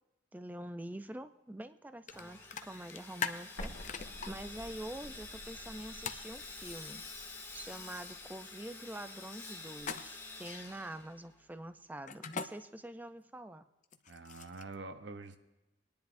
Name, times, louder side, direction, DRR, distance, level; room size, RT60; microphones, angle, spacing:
voice 1, 0.3-3.7 4.3-7.0 7.5-13.6, right 1 dB, 10° right, 9 dB, 0.4 m, -45 dB
sound 1, 2.1-2.2 2.5-4.3 6.0-6.3 9.8-10.3 12.1-12.5 13.8-14.7, left 6 dB, 40° left, 0.5 m, -39 dB
Sawing, 2.1-11.6, left 3 dB, 15° left, 1.8 m, -49 dB
Explosion, 3.6-8.3, equal, 75° left, 1.8 m, -50 dB
voice 2, 14.1-15.4, right 3 dB, 65° right, 8 dB, 0.9 m, -46 dB
23.0 x 10.5 x 2.6 m, 1.0 s
head